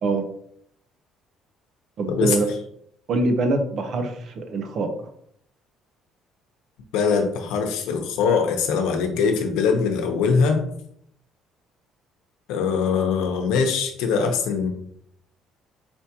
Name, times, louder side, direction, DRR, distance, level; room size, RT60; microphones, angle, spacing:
voice 1, 2.0-2.5 3.1-4.9, right 3 dB, 55° right, 6 dB, 0.7 m, -24 dB
voice 2, 6.9-10.6 12.5-14.7, left 5 dB, 85° left, 4 dB, 0.8 m, -22 dB
4.4 x 3.5 x 2.9 m, 0.68 s
cardioid pair, 135°, 0 cm